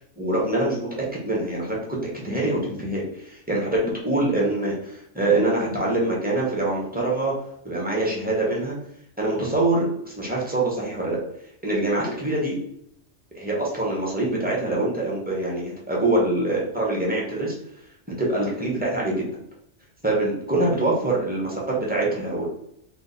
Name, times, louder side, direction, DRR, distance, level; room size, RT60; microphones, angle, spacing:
voice 1, 0.2-1.8 2.0-7.3 7.6-8.7 9.2-11.2 11.6-12.6 13.3-17.5 18.2-19.3 20.0-22.5, right 2 dB, 10° right, -4 dB, 1.5 m, -24 dB
3.8 x 3.3 x 4.1 m, 0.73 s
omnidirectional pair, 1.2 m